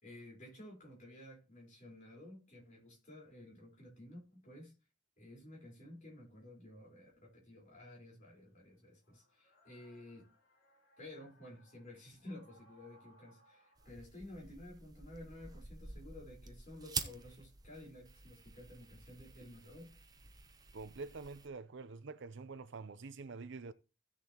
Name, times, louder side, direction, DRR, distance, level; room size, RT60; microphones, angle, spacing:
voice 1, 0.0-4.7 5.2-10.3 11.0-20.0, left 1 dB, 40° left, 4.3 m, -53 dB
sound 1, 5.7-5.8 8.2-13.9, equal, 60° left, 4.7 m, -67 dB
sound 2, 13.8-21.5, right 5 dB, 20° right, 0.7 m, -48 dB
voice 2, 20.7-23.7, right 4 dB, 60° right, 0.6 m, -46 dB
15.5 x 6.8 x 3.0 m
head